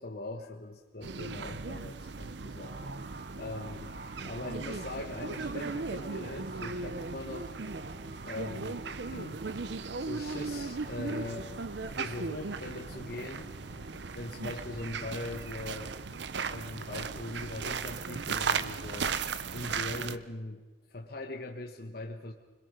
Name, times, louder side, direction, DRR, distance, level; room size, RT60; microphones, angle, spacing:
voice 1, 0.0-2.8 3.0-7.5 8.2-9.4 9.7-11.5 11.8-13.5 14.1-16.0 16.5-19.2 19.5-20.6 20.9-22.3, left 2 dB, 50° left, 2 dB, 1.3 m, -41 dB
sound 1, 1.0-20.2, right 4 dB, 65° right, 0.7 m, -37 dB
sound 2, 2.6-15.8, right 2 dB, 50° right, 1.2 m, -49 dB
sound 3, 10.4-15.9, equal, 5° right, 0.7 m, -55 dB
25.0 x 21.5 x 5.3 m, 1.2 s
head